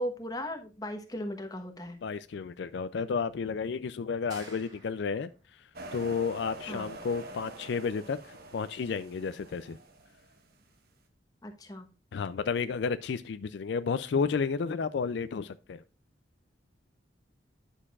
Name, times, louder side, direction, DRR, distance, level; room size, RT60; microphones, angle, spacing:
voice 1, 0.0-2.0 6.7-6.9 11.4-11.9, equal, 20° left, 1.1 m, -37 dB
voice 2, 2.0-5.3 5.9-9.8 12.1-15.8, left 5 dB, 70° left, 0.4 m, -32 dB
sound 1, 4.3-5.4, right 2 dB, 20° right, 2.0 m, -51 dB
sound 2, 5.7-10.7, right 2 dB, 55° right, 1.3 m, -46 dB
9.8 x 6.5 x 2.4 m
head